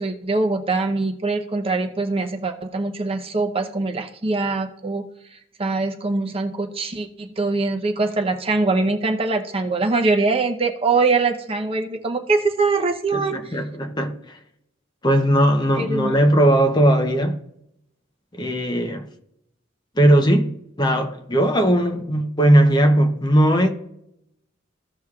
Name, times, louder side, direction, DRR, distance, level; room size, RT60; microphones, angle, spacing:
voice 1, 0.0-5.0 5.6-13.5 15.8-16.1, right 3 dB, 30° right, 0.8 m, -23 dB
voice 2, 13.1-14.4 15.0-17.4 18.4-19.1 20.0-23.7, right 1 dB, 20° left, 0.8 m, -18 dB
15.5 x 6.2 x 2.4 m
head